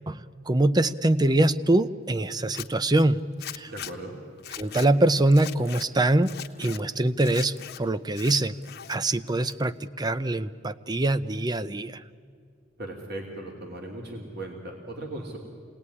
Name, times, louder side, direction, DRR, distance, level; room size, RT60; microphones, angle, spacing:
voice 1, 0.1-3.2 3.5-3.7 4.6-6.3 6.6-8.6 8.9-12.0, right 2 dB, 20° right, 14 dB, 0.6 m, -24 dB
Zipper (clothing), 2.4-2.7 3.4-3.9 4.4-4.9 5.3-5.9 6.2-6.8 7.2-7.8 8.1-9.0 9.3-9.9, left 10 dB, 50° left, 1.1 m, -39 dB
voice 2, 3.7-4.1 12.8-15.4, right 1 dB, 50° right, 0 dB, 3.0 m, -37 dB
27.0 x 19.0 x 9.8 m, 2.3 s
head